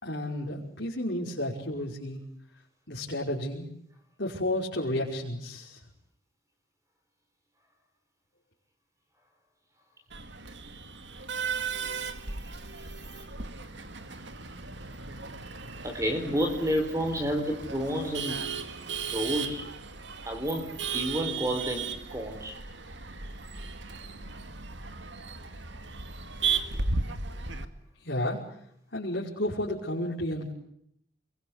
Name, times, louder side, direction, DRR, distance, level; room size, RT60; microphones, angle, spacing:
voice 1, 0.0-2.2 2.9-3.7 4.2-5.8 15.0-15.1 28.0-28.4 28.9-30.5, left 1 dB, 60° left, -5 dB, 5.7 m, -32 dB
Male speech man speaking / Laughter / Chatter, 10.1-27.7, right 5 dB, 65° right, 2.3 m, -36 dB
voice 2, 15.8-18.4 19.1-19.7 20.2-20.7 20.9-22.6, equal, 15° right, 6 dB, 4.4 m, -30 dB
28.5 x 23.0 x 8.3 m, 0.72 s
head